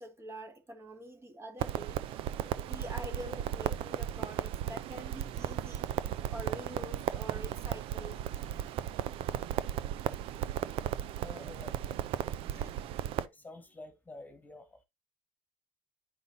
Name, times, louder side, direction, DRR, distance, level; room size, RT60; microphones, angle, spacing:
voice 1, 0.0-2.0 2.6-8.2 12.4-12.7, right 1 dB, 25° right, 2.1 m, -46 dB
Crackle, 1.6-13.3, right 11 dB, 65° right, 0.6 m, -35 dB
voice 2, 11.2-12.0 13.2-14.8, left 2 dB, 15° left, 1.7 m, -49 dB
9.9 x 5.3 x 2.7 m
supercardioid pair, 90°, 10 cm